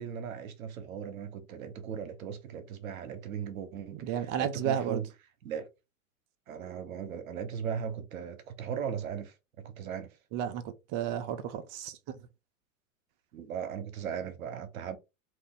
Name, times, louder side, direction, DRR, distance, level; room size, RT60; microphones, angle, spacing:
voice 1, 0.0-5.1 5.4-5.7 6.5-10.2 13.3-15.0, right 7 dB, 75° right, 0.9 m, -38 dB
voice 2, 4.0-5.0 10.3-12.2, right 9 dB, 45° right, 0.6 m, -33 dB
2.9 x 2.5 x 3.5 m
hypercardioid pair, 100°, 42 cm